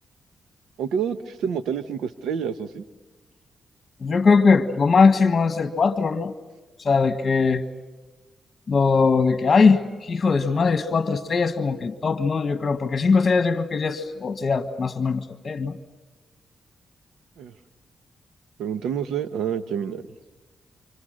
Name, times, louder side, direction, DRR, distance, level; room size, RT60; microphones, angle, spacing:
voice 1, 0.8-2.8 17.4-17.5 18.6-20.0, right 7 dB, 85° right, 11 dB, 1.2 m, -28 dB
voice 2, 4.0-6.3 6.8-7.6 8.7-15.8, left 4 dB, 45° left, 9 dB, 1.5 m, -20 dB
29.5 x 26.5 x 6.5 m, 1.3 s
cardioid pair, 65°, 0 cm